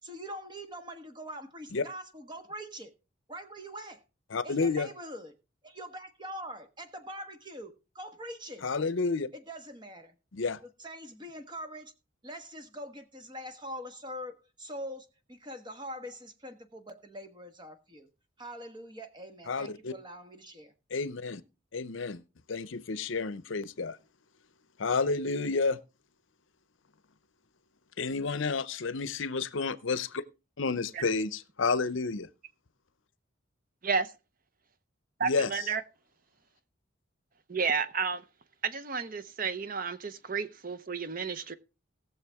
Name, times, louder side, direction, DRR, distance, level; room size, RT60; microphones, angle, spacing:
voice 1, 0.0-2.9 3.3-4.0 4.4-5.4 5.6-8.6 9.3-10.1 10.8-11.9 12.2-18.1 18.4-20.7, equal, 20° right, 1.4 m, -43 dB
voice 2, 4.3-4.9 8.6-9.3 10.3-10.6 19.5-19.9 20.9-21.4 21.7-22.2 22.5-24.0 24.8-25.8 28.0-30.2 30.6-32.3 35.2-35.7, left 4 dB, 70° left, 0.7 m, -30 dB
voice 3, 35.2-35.8 37.5-38.2 38.6-41.5, right 5 dB, 45° right, 0.7 m, -31 dB
18.5 x 7.0 x 3.5 m
head